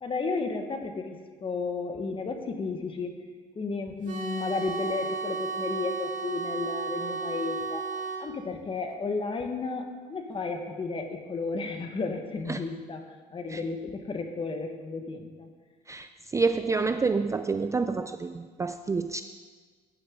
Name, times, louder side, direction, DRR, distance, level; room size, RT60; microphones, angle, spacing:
voice 1, 0.0-3.3 3.5-7.9 8.2-15.5, left 4 dB, 30° left, 5 dB, 1.4 m, -33 dB
sound 1, 4.0-8.2, right 4 dB, 50° right, 2.0 m, -33 dB
voice 2, 15.9-19.2, right 4 dB, 20° right, 9 dB, 0.4 m, -28 dB
15.0 x 10.5 x 3.7 m, 1.5 s
cardioid pair, 110°, 17 cm